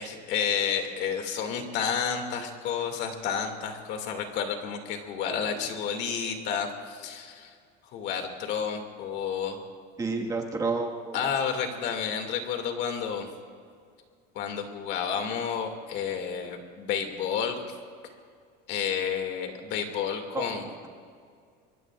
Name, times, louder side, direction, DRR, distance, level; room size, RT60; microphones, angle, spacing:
voice 1, 0.0-7.5 7.9-9.6 11.1-13.3 14.3-17.6 18.7-20.7, left 7 dB, 55° left, 4 dB, 2.4 m, -30 dB
voice 2, 10.0-11.2 20.3-20.5, right 3 dB, 15° right, 1 dB, 1.7 m, -30 dB
24.5 x 23.5 x 2.5 m, 2.2 s
cardioid pair, 155°, 21 cm